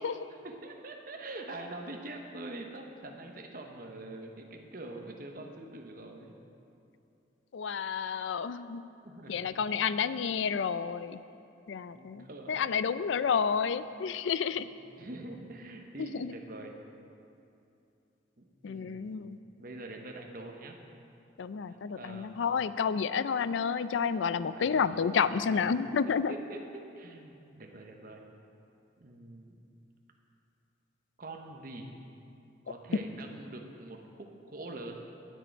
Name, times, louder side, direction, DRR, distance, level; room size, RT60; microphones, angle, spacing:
voice 1, 0.0-6.3 9.0-9.5 9.8-10.3 11.9-12.8 13.1-13.3 14.7-16.7 18.4-19.1 19.6-20.8 21.7-22.5 24.5-24.9 25.3-25.6 26.0-28.2 29.0-29.6 31.2-31.9 32.6-35.0, right 2 dB, 45° right, 2 dB, 0.9 m, -45 dB
voice 2, 7.5-8.8 9.3-11.2 11.7-14.7 16.0-16.3 18.6-19.4 21.4-26.3, left 6 dB, 75° left, 14 dB, 0.4 m, -30 dB
19.0 x 6.4 x 4.6 m, 2.7 s
head